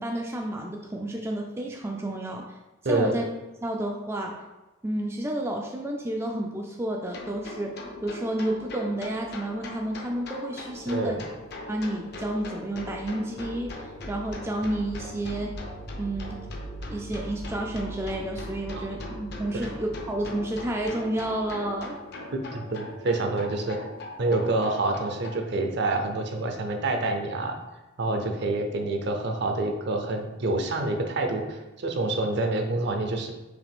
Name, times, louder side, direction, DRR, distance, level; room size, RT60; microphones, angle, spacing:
voice 1, 0.0-2.4 2.8-3.2 3.6-4.3 4.8-11.2 11.7-15.5 16.0-16.4 16.9-21.9, right 1 dB, 15° right, 0 dB, 0.3 m, -30 dB
sound 1, 7.0-25.3, left 1 dB, 55° left, 0.6 m, -39 dB
voice 2, 10.9-11.2 18.7-18.9 19.5-19.7 22.5-23.8 24.2-27.6 28.0-33.3, right 2 dB, 55° right, 4 dB, 0.6 m, -27 dB
4.8 x 3.0 x 3.5 m, 1.1 s
head